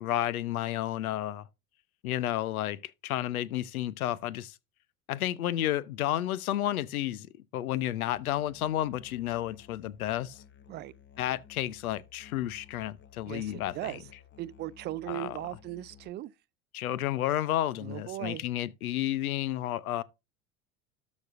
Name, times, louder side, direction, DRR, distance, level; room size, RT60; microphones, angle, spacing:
voice 1, 0.0-1.5 2.0-4.5 5.1-7.3 7.5-10.4 11.2-13.9 15.1-15.4 16.7-20.0, left 13 dB, 75° left, 0.8 m, -31 dB
Musical instrument, 8.2-16.1, left 8 dB, 25° left, 0.9 m, -56 dB
voice 2, 13.3-14.1 14.4-16.3 17.8-18.4, right 15 dB, 25° right, 0.4 m, -38 dB
13.0 x 5.3 x 2.5 m
hypercardioid pair, 80°, 43 cm